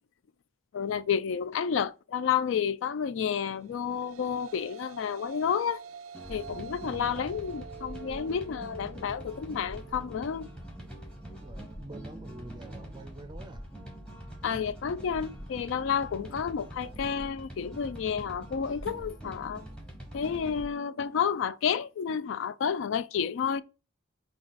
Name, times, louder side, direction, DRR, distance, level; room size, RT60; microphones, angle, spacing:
voice 1, 0.7-5.8 6.3-10.5 14.4-19.6 20.1-23.6, left 7 dB, 70° left, 0.3 m, -30 dB
sound 1, 3.5-12.1, right 6 dB, 85° right, 0.4 m, -48 dB
sound 2, 6.1-20.7, right 1 dB, 5° left, 1.0 m, -44 dB
voice 2, 6.8-7.4 11.4-13.7, right 2 dB, 20° right, 0.4 m, -46 dB
5.9 x 2.3 x 3.9 m
head